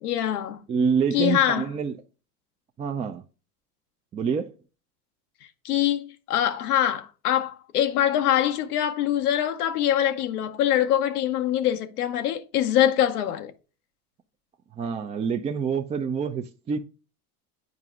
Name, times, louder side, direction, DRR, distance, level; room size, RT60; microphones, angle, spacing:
voice 1, 0.0-0.6 1.1-1.7 5.6-13.5, left 11 dB, 85° left, 0.7 m, -24 dB
voice 2, 0.7-1.9 2.8-3.2 4.1-4.5 14.8-16.8, right 6 dB, 15° right, 0.3 m, -26 dB
9.3 x 4.8 x 2.4 m
hypercardioid pair, 85°, 44 cm